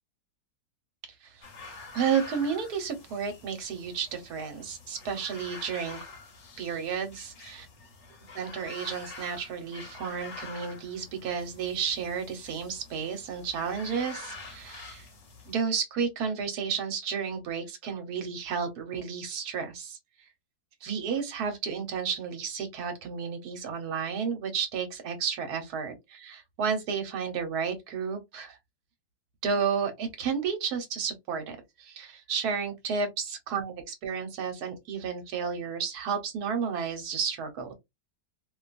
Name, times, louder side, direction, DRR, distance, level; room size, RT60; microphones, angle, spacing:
sound 1, 1.4-15.6, left 3 dB, 55° left, 0.9 m, -46 dB
voice 1, 1.9-6.0 6.6-7.7 8.3-15.1 15.5-20.0 20.8-28.6 29.4-37.7, right 6 dB, 65° right, 1.3 m, -32 dB
2.9 x 2.3 x 2.4 m
omnidirectional pair, 1.9 m